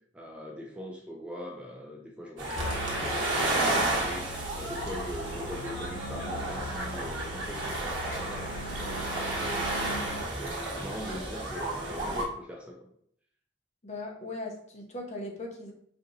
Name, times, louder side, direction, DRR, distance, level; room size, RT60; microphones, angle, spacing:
voice 1, 0.1-12.9, equal, 5° right, -1 dB, 0.3 m, -42 dB
sound 1, 2.4-12.2, right 2 dB, 75° right, 1.2 m, -32 dB
sound 2, 2.5-10.2, left 1 dB, 85° left, 0.9 m, -41 dB
voice 2, 13.8-15.7, left 2 dB, 35° left, 0 dB, 0.7 m, -38 dB
4.4 x 2.8 x 2.6 m, 0.66 s
head